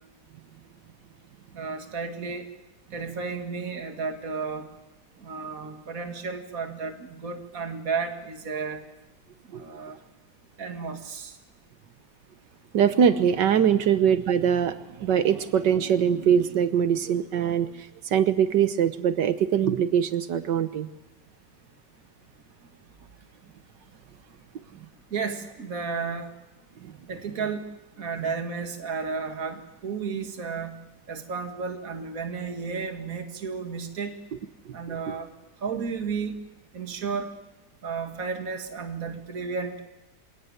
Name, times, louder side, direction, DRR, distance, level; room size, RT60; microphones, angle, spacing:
voice 1, 1.5-2.5 2.9-4.7 5.2-8.8 9.5-10.0 10.6-11.3 25.1-26.3 27.1-27.6 28.0-30.7 31.1-34.2 34.7-35.3 35.6-36.4 36.7-37.3 37.8-39.8, right 5 dB, 50° right, 5 dB, 2.5 m, -32 dB
voice 2, 12.7-17.7 18.1-20.9 34.9-35.0, right 8 dB, 80° right, 11 dB, 1.7 m, -22 dB
27.0 x 18.0 x 9.5 m, 1.0 s
omnidirectional pair, 1.9 m